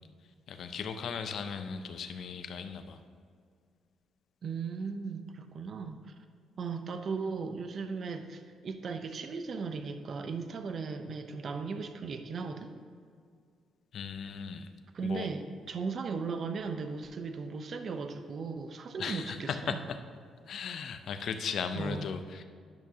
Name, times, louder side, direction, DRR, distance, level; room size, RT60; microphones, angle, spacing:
voice 1, 0.5-3.0 13.9-14.7 15.0-15.3 19.0-20.0 20.5-22.4, left 6 dB, 65° left, 8 dB, 0.5 m, -37 dB
voice 2, 4.4-6.0 6.6-12.7 14.9-19.8 21.7-22.1, right 5 dB, 50° right, 8 dB, 0.5 m, -37 dB
10.5 x 5.9 x 2.8 m, 2.1 s
cardioid pair, 90°, 0 cm